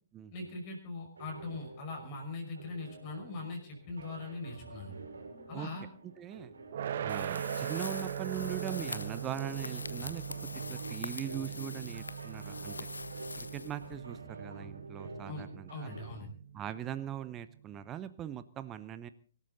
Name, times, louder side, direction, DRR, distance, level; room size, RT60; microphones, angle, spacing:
voice 1, 0.3-5.0 5.5-5.9 15.3-16.3, left 3 dB, 35° left, 1 dB, 5.7 m, -41 dB
sound 1, 1.2-16.1, right 3 dB, 70° right, 3.6 m, -49 dB
voice 2, 6.0-6.5 7.0-10.2 10.7-12.9 13.4-15.9 16.5-19.1, right 10 dB, 20° right, 13 dB, 0.8 m, -41 dB
sound 2, 6.7-17.7, right 9 dB, 50° right, 0.8 m, -41 dB
sound 3, 7.1-14.2, left 3 dB, 75° left, 0.8 m, -44 dB
25.0 x 12.5 x 4.0 m, 0.41 s
figure-of-eight pair, 120°, 0 cm